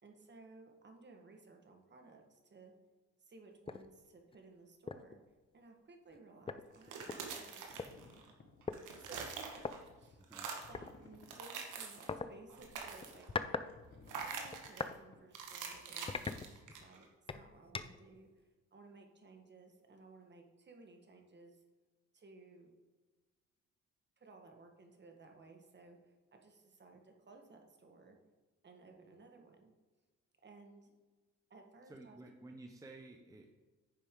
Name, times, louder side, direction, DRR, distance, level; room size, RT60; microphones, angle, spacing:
voice 1, 0.0-2.7 3.2-5.2 5.5-8.3 9.0-9.7 10.0-10.2 10.7-13.8 14.2-21.6 22.1-22.7 24.2-28.2 28.6-29.7 30.4-30.9 31.5-32.2, right 3 dB, 35° right, 3 dB, 1.5 m, -58 dB
sound 1, 3.7-3.9 4.3-4.4 4.9-5.1 6.1-6.2 6.5-7.9 8.7-8.8 9.6-9.7 10.7-10.9 12.1-12.3 13.0-13.7 14.0-15.0 15.4-15.6 16.1-16.9 17.3-18.1, left 4 dB, 20° left, 0.4 m, -41 dB
sound 2, 6.7-8.3 8.6-9.9 10.2-10.8 11.2-12.2 12.5-13.3 14.1-14.9 15.3-17.0, right 5 dB, 85° right, 1.4 m, -45 dB
sound 3, 7.7-8.7 9.5-10.2 10.6-11.4 12.0-12.1 12.5-13.2 13.7-14.6 15.1-15.2, left 4 dB, 40° left, 1.3 m, -60 dB
voice 2, 10.2-10.5 31.9-33.6, right 2 dB, 10° right, 3 dB, 0.8 m, -53 dB
9.9 x 6.9 x 3.7 m, 1.3 s
cardioid pair, 90°, 30 cm